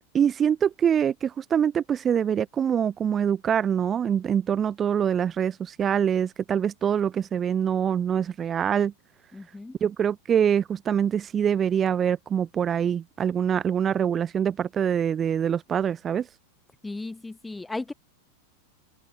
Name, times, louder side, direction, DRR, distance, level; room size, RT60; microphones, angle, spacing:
voice 1, 0.1-8.9 9.8-16.3, right 8 dB, 25° right, 0.6 m, -24 dB
voice 2, 9.3-9.8 16.8-17.9, left 2 dB, 10° left, 1.8 m, -35 dB
open air
figure-of-eight pair, 90°, 0 cm